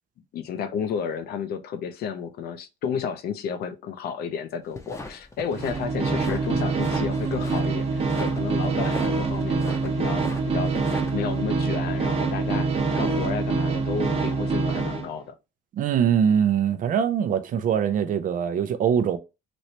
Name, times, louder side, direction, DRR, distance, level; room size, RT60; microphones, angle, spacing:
voice 1, 0.3-10.7 11.1-15.3, left 7 dB, 70° left, 0.6 m, -32 dB
sound 1, 4.6-11.4, left 2 dB, 15° left, 0.7 m, -40 dB
sound 2, 5.5-15.1, right 4 dB, 35° right, 0.9 m, -25 dB
voice 2, 15.7-19.2, right 8 dB, 55° right, 0.5 m, -22 dB
3.1 x 3.1 x 2.8 m
cardioid pair, 110°, 17 cm